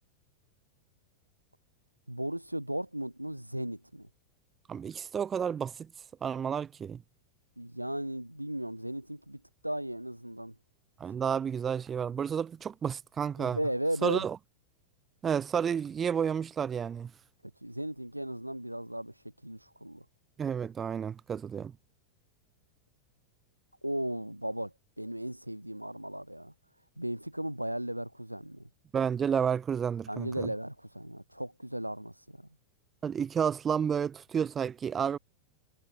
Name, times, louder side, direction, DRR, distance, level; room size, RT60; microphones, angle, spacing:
voice 1, 2.1-4.1 7.6-10.5 13.4-14.2 17.6-19.1 19.4-20.0 23.8-26.5 27.0-28.7 30.1-32.5, right 1 dB, 90° right, 5.1 m, -36 dB
voice 2, 4.7-5.9 6.2-7.0 11.0-13.6 14.0-14.4 15.2-17.1 20.4-21.7 28.9-30.5 33.0-35.2, right 7 dB, 20° right, 0.9 m, -31 dB
figure-of-eight pair, 90°, 0 cm